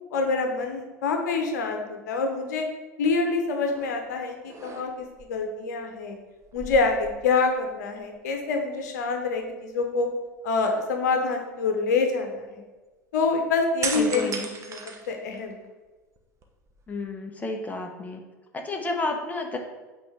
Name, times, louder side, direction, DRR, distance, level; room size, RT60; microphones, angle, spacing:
voice 1, 0.1-2.7 3.0-4.9 5.3-6.2 6.5-10.1 10.4-12.6 13.1-14.3 14.7-14.8 15.1-15.6, left 4 dB, 65° left, 4 dB, 1.0 m, -26 dB
sound 1, 3.7-4.0 4.4-5.2 6.4-7.7 8.0-8.2 13.8-15.7 16.2-17.1, right 4 dB, 30° right, 1.1 m, -36 dB
voice 2, 13.9-14.5 16.9-18.2 18.5-19.6, left 2 dB, 15° left, 3 dB, 1.0 m, -31 dB
8.3 x 4.1 x 3.5 m, 1.2 s
figure-of-eight pair, 75°, 10 cm